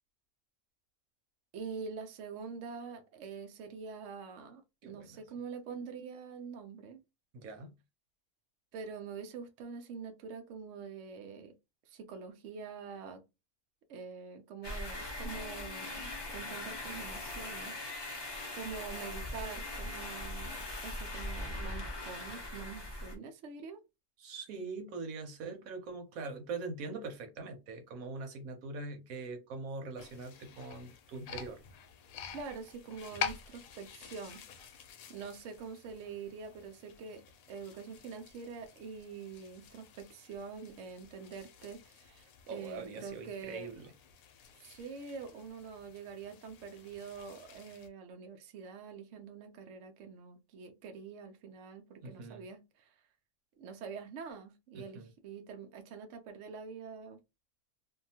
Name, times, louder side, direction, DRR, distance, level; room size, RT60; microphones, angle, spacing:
voice 1, 1.5-7.0 8.7-11.5 11.9-13.2 13.9-17.8 18.5-23.8 32.3-34.8 35.1-37.2 37.5-43.7 44.6-52.9 53.6-57.2, right 5 dB, 70° right, 0.9 m, -45 dB
voice 2, 4.8-5.2 7.3-7.7 18.7-18.8 24.2-31.6 42.5-43.9 52.0-52.5 54.7-55.1, right 3 dB, 90° right, 1.2 m, -42 dB
sound 1, 14.6-23.2, left 2 dB, 30° left, 0.5 m, -40 dB
sound 2, 30.0-47.9, left 8 dB, 90° left, 1.0 m, -48 dB
2.7 x 2.2 x 2.7 m
omnidirectional pair, 1.4 m